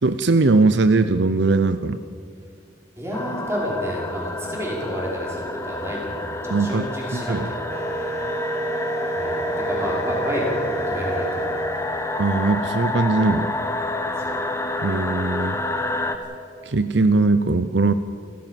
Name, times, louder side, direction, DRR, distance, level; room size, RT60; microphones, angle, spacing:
voice 1, 0.0-2.0 6.5-6.9 7.1-7.5 12.2-13.5 14.8-15.6 16.6-17.9, right 3 dB, 70° right, 11 dB, 0.7 m, -20 dB
voice 2, 3.0-7.8 9.1-11.6 14.2-14.4, equal, 15° right, -3 dB, 5.8 m, -29 dB
sound 1, 3.1-16.2, left 2 dB, 15° left, 1.3 m, -29 dB
Wind instrument woodwind instrument, 7.7-12.3, right 2 dB, 35° right, 1.3 m, -30 dB
29.0 x 14.0 x 7.6 m, 2.2 s
head